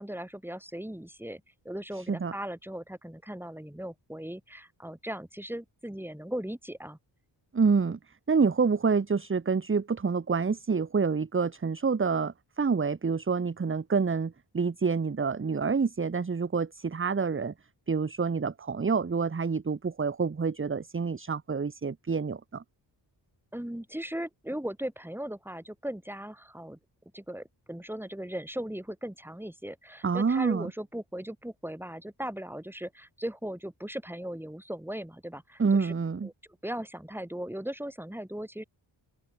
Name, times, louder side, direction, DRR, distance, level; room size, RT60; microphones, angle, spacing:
voice 1, 0.0-7.0 23.5-26.8 27.1-35.9 36.2-36.3 36.6-38.6, right 1 dB, 5° right, 3.7 m, -38 dB
voice 2, 7.5-8.0 8.3-17.5 17.9-22.6 30.0-30.7 35.6-36.3, right 5 dB, 25° right, 1.0 m, -27 dB
open air
cardioid pair, 80°, 46 cm